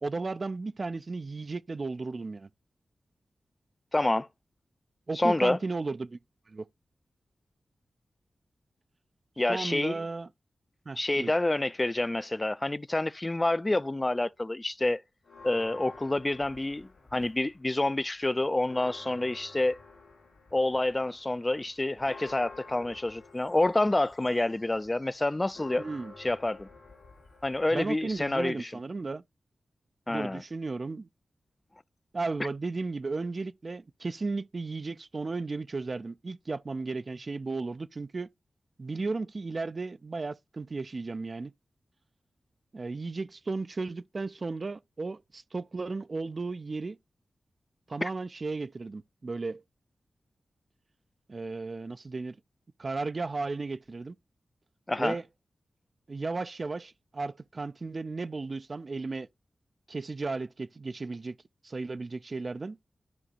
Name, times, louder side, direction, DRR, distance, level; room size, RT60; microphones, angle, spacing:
voice 1, 0.0-2.5 5.1-6.2 6.5-6.7 9.5-10.3 10.9-11.3 25.8-26.1 27.7-29.2 30.1-31.1 32.1-38.3 38.8-41.5 42.7-47.0 47.9-49.6 51.3-52.4 52.8-54.2 55.0-55.3 56.1-59.3 59.9-61.4 61.6-62.8, right 3 dB, 50° right, 0.3 m, -34 dB
voice 2, 3.9-4.3 5.2-5.6 9.4-10.0 11.0-15.0 15.4-19.8 20.5-25.8 26.2-26.7 27.4-28.7 30.1-30.4 48.0-48.1 54.9-55.2, left 2 dB, 25° left, 0.4 m, -28 dB
Church bell, 15.2-17.6 18.0-18.1 18.4-28.5, left 4 dB, 90° left, 2.4 m, -51 dB
12.5 x 5.1 x 2.4 m
cardioid pair, 50°, 0 cm